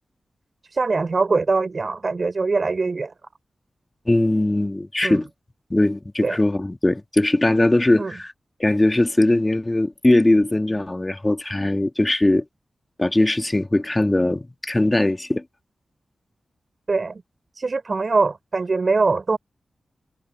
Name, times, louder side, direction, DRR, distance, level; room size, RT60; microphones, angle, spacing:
voice 1, 0.7-3.1 5.0-5.2 6.2-6.4 8.0-8.2 16.9-17.2 17.6-19.4, right 3 dB, 55° right, 4.3 m, -22 dB
voice 2, 4.1-5.3 5.7-8.3 8.6-12.4 13.0-15.4, left 1 dB, 25° left, 2.0 m, -20 dB
cardioid pair, 45°, 0 cm